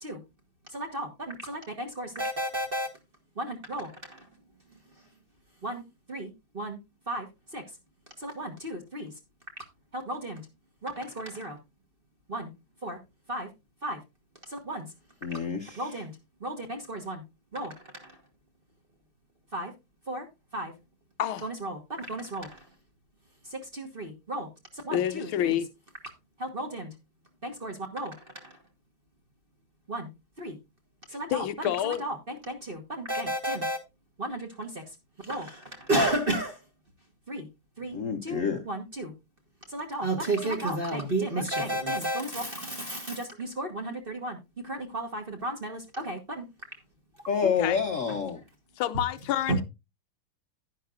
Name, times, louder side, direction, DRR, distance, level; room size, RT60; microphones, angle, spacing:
voice 1, 0.7-2.9 3.4-4.2 5.6-5.8 6.1-6.8 7.1-7.3 7.5-7.6 8.2-9.1 9.9-10.4 10.8-11.6 12.3-12.5 12.8-13.0 13.3-13.5 13.8-14.0 14.5-14.9 15.7-16.1 16.4-17.2 17.5-17.7 18.0-18.1 19.5-19.7 20.1-20.2 20.5-20.7 21.4-22.6 23.5-24.5 24.7-25.6 26.4-26.9 27.4-28.1 28.4-28.5 29.9-30.1 30.4-30.6 31.1-31.4 31.8-33.8 34.2-34.8 35.2-36.6 37.3-37.5 37.8-38.0 38.2-39.1 39.7-44.4 44.6-46.4 49.5-49.6, right 1 dB, 30° right, 1.2 m, -33 dB
voice 2, 15.2-15.9 37.9-38.6 47.3-48.4, left 6 dB, 55° left, 0.9 m, -28 dB
voice 3, 24.9-25.7 31.1-32.1 47.4-47.8 48.8-49.6, left 11 dB, 75° left, 1.4 m, -28 dB
10.5 x 10.5 x 2.5 m
omnidirectional pair, 2.4 m